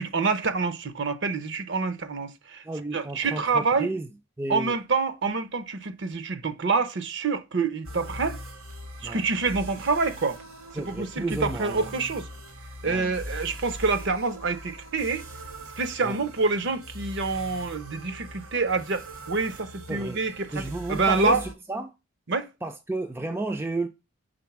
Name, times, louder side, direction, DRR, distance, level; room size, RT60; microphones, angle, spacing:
voice 1, 0.0-2.6 2.9-3.9 4.5-8.4 9.0-10.4 10.7-12.3 12.8-15.2 15.8-20.6 20.9-21.4 22.3-22.5, right 4 dB, 55° right, 0.7 m, -27 dB
voice 2, 2.6-4.1 4.4-4.8 9.0-9.2 10.8-11.9 12.8-13.1 16.0-16.2 19.9-20.2 20.5-21.9 22.6-23.9, right 2 dB, 10° right, 0.4 m, -32 dB
sound 1, 7.8-21.5, equal, 70° right, 1.3 m, -41 dB
5.2 x 3.7 x 5.8 m
head